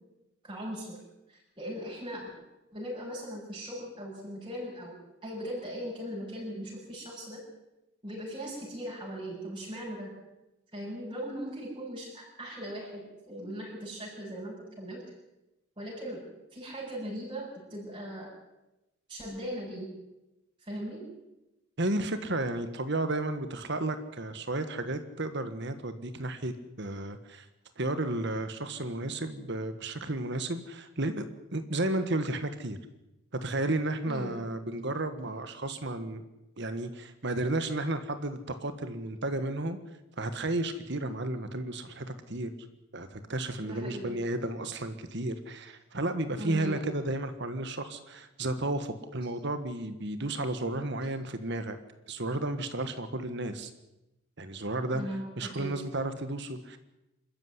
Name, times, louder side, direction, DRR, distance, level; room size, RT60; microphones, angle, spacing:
voice 1, 0.4-1.0 1.3-2.3 2.7-7.4 8.0-10.1 10.7-15.0 15.8-16.2 16.5-18.3 19.1-19.9 20.6-21.0 34.1-34.3 43.6-44.2 46.4-46.8 54.9-55.7, equal, 20° right, -5 dB, 7.4 m, -39 dB
voice 2, 21.8-27.5 27.8-31.2 31.5-32.8 33.4-36.2 36.6-39.8 40.2-42.5 42.9-51.8 52.1-53.7 54.4-55.0 55.4-56.8, right 2 dB, 55° right, 10 dB, 1.6 m, -33 dB
26.5 x 14.0 x 9.7 m, 0.96 s
head